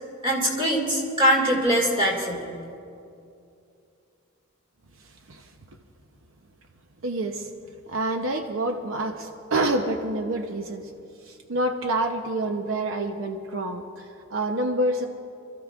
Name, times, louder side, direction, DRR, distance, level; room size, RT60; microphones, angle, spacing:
voice 1, 0.2-2.4, equal, 25° right, -2 dB, 2.3 m, -22 dB
voice 2, 7.0-7.5 7.9-10.9 11.3-15.1, right 1 dB, 80° right, 4 dB, 0.8 m, -27 dB
28.5 x 14.0 x 2.5 m, 2.5 s
head